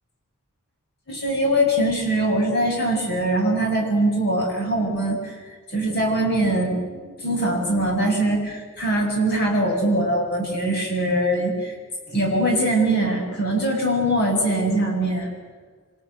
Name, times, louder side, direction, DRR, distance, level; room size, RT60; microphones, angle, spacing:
voice 1, 1.1-5.3 5.7-11.7 12.1-15.3, right 1 dB, 50° left, 2 dB, 7.9 m, -22 dB
27.5 x 25.5 x 8.3 m, 1.4 s
head